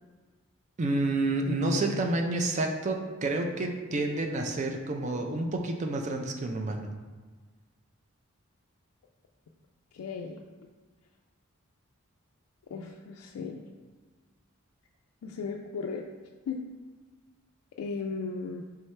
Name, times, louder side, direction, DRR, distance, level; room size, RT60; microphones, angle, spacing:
voice 1, 0.8-6.9, right 2 dB, 35° right, 3 dB, 0.4 m, -29 dB
voice 2, 9.9-10.4 12.7-13.6 15.2-16.1 16.5-16.6 17.8-18.6, left 4 dB, 85° left, 0 dB, 0.3 m, -36 dB
4.5 x 3.6 x 3.2 m, 1.4 s
head